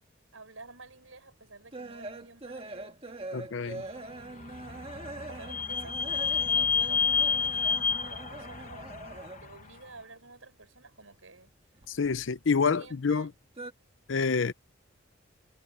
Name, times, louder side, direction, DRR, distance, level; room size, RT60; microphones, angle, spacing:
voice 1, 0.3-3.0 3.6-5.0 5.3-8.9 9.4-11.5 12.7-13.3, right 3 dB, 75° right, 6.4 m, -51 dB
sound 1, 0.9-9.6 9.9-11.1 11.4-12.8 13.1-13.7, right 2 dB, 30° right, 1.6 m, -43 dB
voice 2, 3.3-3.8 11.9-13.3 14.1-14.5, left 5 dB, 65° left, 0.6 m, -27 dB
Vehicle / Squeak, 4.1-9.7, left 6 dB, 35° left, 1.2 m, -30 dB
head